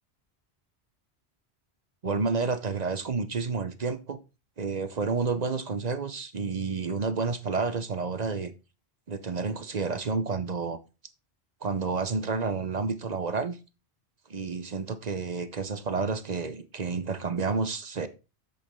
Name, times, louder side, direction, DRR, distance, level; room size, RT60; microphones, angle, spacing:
voice 1, 2.0-4.2 4.6-8.5 9.1-10.8 11.6-13.6 14.3-18.1, right 4 dB, 45° right, 0.8 m, -30 dB
7.9 x 7.1 x 3.6 m
omnidirectional pair, 1.1 m